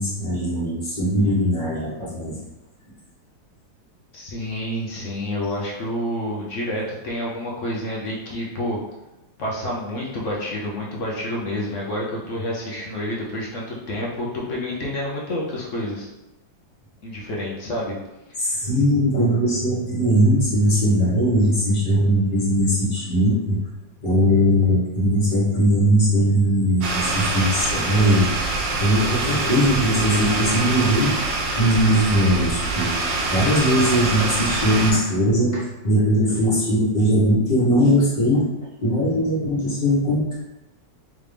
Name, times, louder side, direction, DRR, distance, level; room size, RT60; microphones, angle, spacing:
voice 1, 0.0-2.4 18.4-23.6 24.0-28.3 28.8-31.1 31.6-32.9 33.3-38.4 38.8-40.4, equal, 25° left, -7 dB, 1.3 m, -20 dB
voice 2, 4.1-8.8 9.4-16.1 17.0-18.0 18.4-18.7, left 1 dB, 55° left, -3 dB, 0.9 m, -29 dB
sound 1, 26.8-34.9, right 2 dB, 80° right, 1.3 m, -25 dB
3.6 x 3.3 x 3.3 m, 1.0 s
omnidirectional pair, 2.0 m